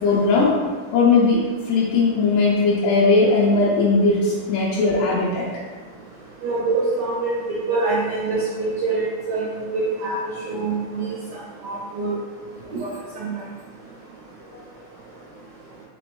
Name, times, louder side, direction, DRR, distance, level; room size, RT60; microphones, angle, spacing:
voice 1, 0.0-0.5 0.9-1.4 1.7-5.5 14.5-14.6, left 3 dB, 85° left, -5 dB, 2.2 m, -18 dB
voice 2, 6.4-10.2 10.5-11.1 11.6-12.2 12.8-12.9 13.2-13.3, right 3 dB, 70° right, -8 dB, 1.7 m, -25 dB
5.2 x 3.3 x 3.1 m, 1.4 s
omnidirectional pair, 3.7 m